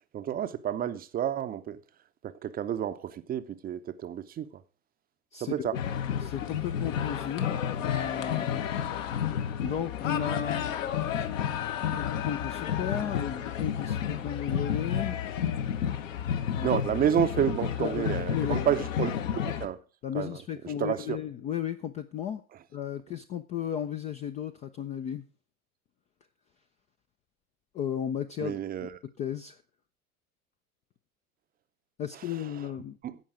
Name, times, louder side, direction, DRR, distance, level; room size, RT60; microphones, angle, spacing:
voice 1, 0.1-1.8 2.2-4.5 5.4-5.8 16.6-19.8 20.1-20.4 20.8-21.2 28.4-28.9 33.0-33.2, right 10 dB, 20° right, 0.7 m, -30 dB
voice 2, 5.3-5.8 6.2-8.7 9.6-10.7 11.8-15.2 16.5-16.8 17.8-18.7 20.0-22.4 22.7-25.2 27.7-28.6 29.2-29.6 32.0-33.0, left 9 dB, 15° left, 0.4 m, -34 dB
sound 1, 5.7-19.7, left 9 dB, 60° left, 1.2 m, -31 dB
15.5 x 5.5 x 4.9 m
figure-of-eight pair, 80°, 44 cm